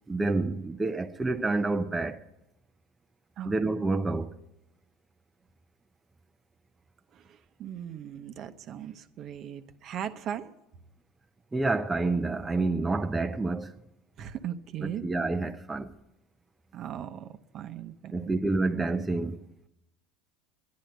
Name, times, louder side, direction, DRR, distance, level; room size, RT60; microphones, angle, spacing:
voice 1, 0.1-2.2 3.5-4.3 11.5-13.7 14.8-15.9 18.1-19.4, right 3 dB, 15° right, 0.6 m, -28 dB
voice 2, 7.1-10.5 14.2-15.0 16.7-18.4, right 10 dB, 45° right, 0.8 m, -38 dB
10.5 x 10.5 x 9.0 m
supercardioid pair, 115°, 0 cm